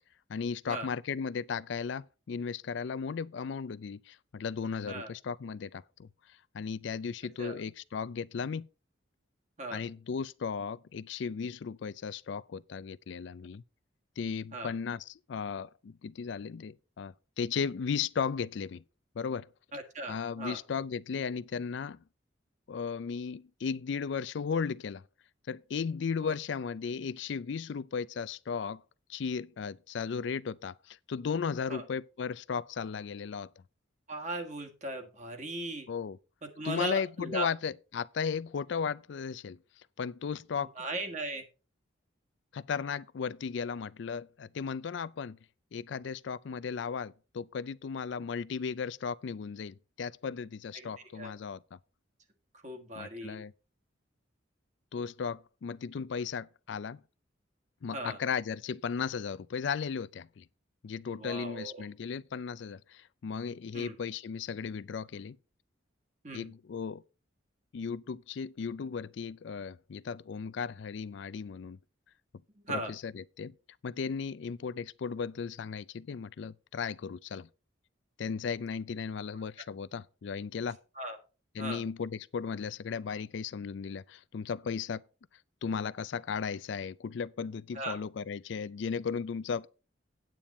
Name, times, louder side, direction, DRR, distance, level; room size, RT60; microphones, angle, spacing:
voice 1, 0.3-8.7 9.7-13.6 14.2-18.8 19.2-19.5 20.1-22.0 22.7-25.0 25.5-28.8 29.1-33.5 35.9-36.2 36.6-39.6 40.0-40.7 42.5-45.4 45.7-51.6 53.0-53.5 54.9-57.0 57.8-60.4 60.8-65.4 66.3-67.0 67.7-71.8 72.7-73.5 73.8-77.5 78.2-80.8 81.6-85.0 85.6-89.7, left 6 dB, 70° left, 0.4 m, -36 dB
voice 2, 19.7-20.6 26.2-26.3 31.7-31.8 34.1-35.9 36.4-37.5 40.6-41.4 50.7-51.3 52.6-53.4 57.9-58.2 61.1-61.9 63.7-63.9 66.2-66.5 72.6-72.9 81.0-81.2 81.6-81.8 87.7-88.0, right 2 dB, 35° right, 1.6 m, -38 dB
9.0 x 8.8 x 4.2 m
head